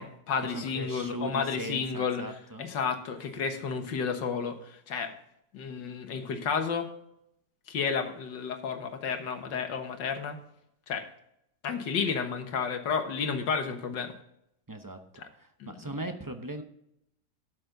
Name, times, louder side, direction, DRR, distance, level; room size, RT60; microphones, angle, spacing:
voice 1, 0.0-5.1 5.5-6.9 7.7-10.4 10.9-11.1 11.6-14.1 15.2-15.3 15.6-15.8, left 6 dB, 85° left, 6 dB, 2.0 m, -32 dB
voice 2, 0.5-2.7 14.7-15.2 15.7-16.6, right 1 dB, 35° right, 5 dB, 0.3 m, -38 dB
12.5 x 8.3 x 3.9 m, 0.76 s
omnidirectional pair, 1.9 m